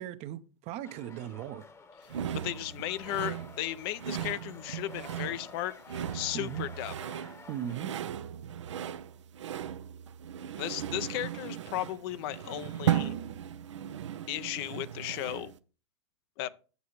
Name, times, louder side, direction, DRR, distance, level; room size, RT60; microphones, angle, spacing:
voice 1, 0.0-1.7 6.3-6.6 7.5-7.9, right 11 dB, 45° right, 0.6 m, -38 dB
sound 1, 0.8-7.8, left 4 dB, 20° left, 0.9 m, -51 dB
sound 2, 2.1-15.6, right 10 dB, 85° right, 0.4 m, -36 dB
voice 2, 2.3-5.7 6.1-6.9 10.6-13.2 14.3-15.5 16.4-16.5, left 14 dB, 55° left, 0.5 m, -35 dB
8.2 x 7.1 x 3.0 m
hypercardioid pair, 95°, 15 cm